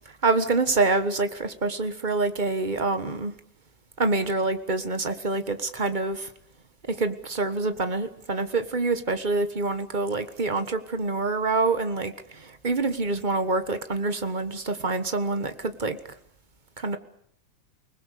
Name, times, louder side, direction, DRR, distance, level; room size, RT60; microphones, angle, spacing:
voice 1, 0.2-3.3 4.0-6.3 6.9-16.0 16.8-17.0, right 3 dB, 50° right, 9 dB, 0.5 m, -26 dB
30.0 x 20.5 x 6.8 m, 0.67 s
omnidirectional pair, 3.3 m